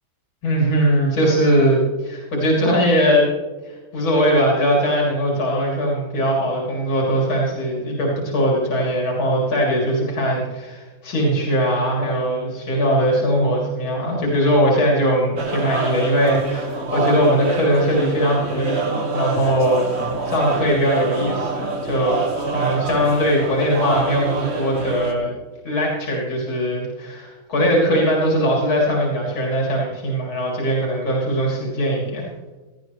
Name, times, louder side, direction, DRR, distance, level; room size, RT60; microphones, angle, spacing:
voice 1, 0.4-3.3 3.6-22.2 22.5-25.3 25.6-32.3, equal, 85° left, -3 dB, 3.7 m, -20 dB
sound 1, 15.4-25.1, right 3 dB, 35° right, 1.6 m, -26 dB
17.5 x 13.5 x 3.2 m, 1.3 s
omnidirectional pair, 2.1 m